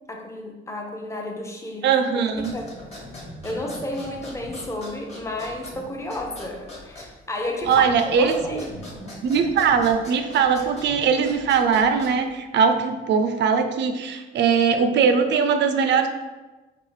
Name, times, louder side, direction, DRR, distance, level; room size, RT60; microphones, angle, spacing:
voice 1, 0.1-1.9 2.4-2.7 3.4-7.9 8.2-8.7, left 1 dB, 15° left, 1 dB, 0.6 m, -32 dB
voice 2, 1.8-2.5 7.7-8.6 9.2-16.1, right 6 dB, 65° right, 7 dB, 0.4 m, -20 dB
sound 1, 2.3-12.4, left 1 dB, 30° left, 1.3 m, -41 dB
4.6 x 2.0 x 3.1 m, 1.2 s
cardioid pair, 90°, 20 cm